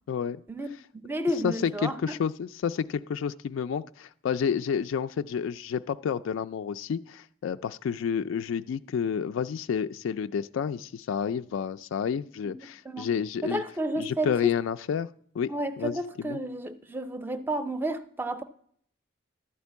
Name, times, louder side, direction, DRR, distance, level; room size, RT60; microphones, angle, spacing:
voice 1, 0.1-0.4 1.4-13.6 14.0-15.1 15.3-15.5 15.8-16.4, left 7 dB, 80° left, 0.3 m, -30 dB
voice 2, 1.0-2.2 12.4-12.5 12.9-13.1 13.4-14.5 15.5-18.4, right 1 dB, 10° right, 0.5 m, -31 dB
12.5 x 4.4 x 8.2 m
head